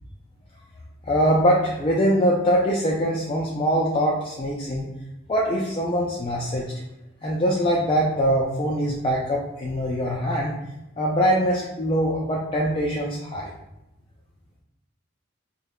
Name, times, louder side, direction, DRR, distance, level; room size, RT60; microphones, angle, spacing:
voice 1, 1.0-4.9 5.3-6.7 7.2-10.6 11.0-13.5, equal, 25° left, -3 dB, 0.3 m, -23 dB
5.2 x 2.1 x 2.3 m, 0.92 s
head